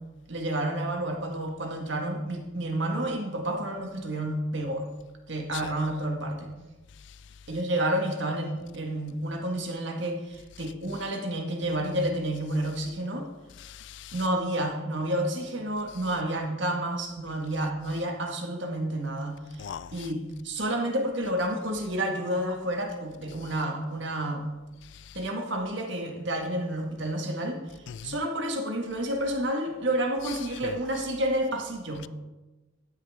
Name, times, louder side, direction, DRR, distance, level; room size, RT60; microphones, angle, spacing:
voice 1, 0.3-4.9 5.3-6.5 7.5-13.3 14.1-24.5 25.1-32.1, right 1 dB, 60° right, 1.7 m, -30 dB
voice 2, 13.6-14.1 19.6-20.1 25.1-25.2 27.9-28.2 30.6-30.8, left 7 dB, 60° left, 0.3 m, -40 dB
14.0 x 9.8 x 3.7 m
head